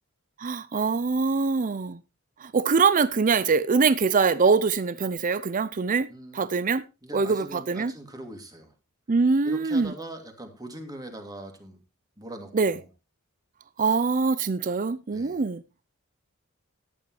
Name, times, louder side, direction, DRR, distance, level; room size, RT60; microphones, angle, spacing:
voice 1, 0.4-2.0 2.4-6.1 6.3-6.8 7.1-7.9 9.1-9.9 12.5-12.8 13.8-15.6, right 4 dB, 40° right, 0.5 m, -23 dB
voice 2, 6.1-6.4 7.0-8.7 9.4-11.8 12.2-12.9 15.1-15.4, right 1 dB, 20° right, 2.6 m, -41 dB
14.0 x 10.5 x 3.1 m
head